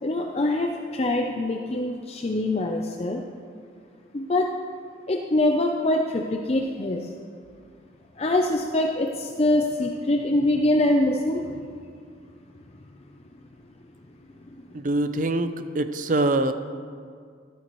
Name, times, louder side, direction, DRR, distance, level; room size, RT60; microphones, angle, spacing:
voice 1, 0.0-3.2 4.1-4.5 5.1-7.1 8.2-11.8, left 1 dB, 35° left, 2 dB, 0.5 m, -24 dB
voice 2, 14.7-16.5, right 2 dB, 45° right, 10 dB, 0.6 m, -24 dB
13.5 x 12.5 x 3.1 m, 2.1 s
head